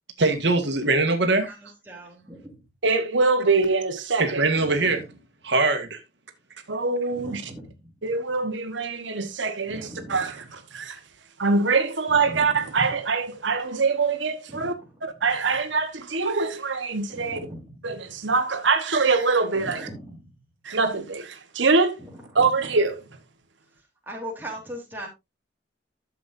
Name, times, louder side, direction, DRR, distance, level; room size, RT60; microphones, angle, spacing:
voice 1, 0.2-1.7 4.2-5.2 5.4-6.0, right 2 dB, 75° right, 1.8 m, -22 dB
voice 2, 1.9-2.4 7.2-7.7 9.7-10.2 14.6-14.7 17.2-17.6 19.9-20.1 24.1-25.1, right 1 dB, 10° right, 3.5 m, -38 dB
voice 3, 2.8-4.4 6.7-7.5 8.0-11.0 11.4-14.7 15.0-17.4 17.8-19.9 20.6-22.0 22.3-23.0, right 4 dB, 90° right, 1.3 m, -24 dB
12.0 x 7.5 x 2.7 m
head